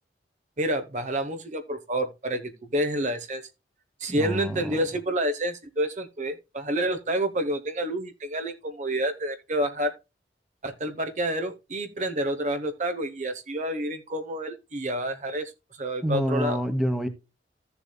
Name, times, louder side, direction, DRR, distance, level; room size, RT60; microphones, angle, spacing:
voice 1, 0.6-3.4 4.0-9.9 10.6-15.5 15.8-16.6, right 1 dB, 45° right, 0.9 m, -29 dB
voice 2, 4.1-4.8 16.0-17.1, equal, ahead, 1.1 m, -27 dB
14.5 x 6.9 x 2.2 m
head